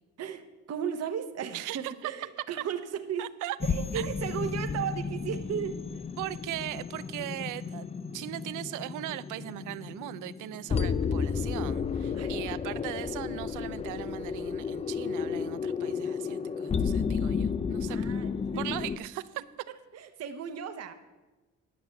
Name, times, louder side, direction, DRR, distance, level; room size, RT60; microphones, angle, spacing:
voice 1, 0.7-3.3 3.6-5.8 12.1-12.3 16.3-16.8 17.9-18.6 19.9-20.9, right 8 dB, 55° right, 8 dB, 0.9 m, -35 dB
voice 2, 1.5-2.1 3.2-3.6 3.9-4.1 6.2-7.9 8.1-18.1 18.6-19.4, right 15 dB, 85° right, 16 dB, 0.5 m, -39 dB
sound 1, 3.6-19.0, left 6 dB, 20° left, 0.4 m, -32 dB
11.0 x 6.1 x 7.0 m, 1.2 s
cardioid pair, 90°, 30 cm